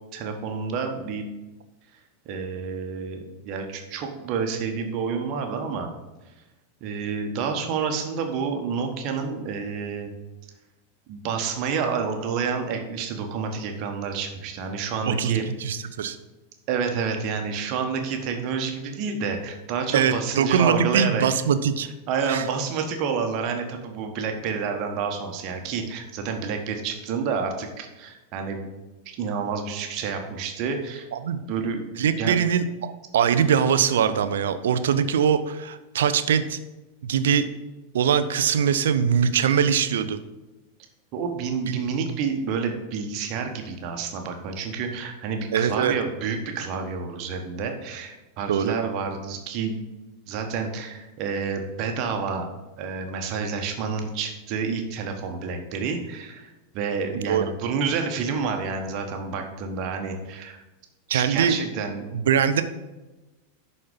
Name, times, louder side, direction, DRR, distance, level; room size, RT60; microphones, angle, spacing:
voice 1, 0.1-1.3 2.2-3.2 3.4-5.9 6.8-10.1 11.1-15.4 16.7-21.3 22.1-28.7 29.0-31.1 31.5-31.9 32.2-32.4 41.1-49.8 50.3-52.4 52.8-60.6 61.1-62.1, right 5 dB, 40° right, 4 dB, 1.3 m, -29 dB
voice 2, 15.0-16.2 19.9-21.9 22.3-22.4 31.1-31.4 32.0-36.6 37.0-37.5 37.9-40.2 45.5-45.9 48.5-48.8 57.1-57.4 61.1-61.6 62.1-62.6, right 7 dB, 60° right, 11 dB, 0.6 m, -22 dB
11.0 x 4.3 x 5.3 m, 1.1 s
figure-of-eight pair, 90°, 0 cm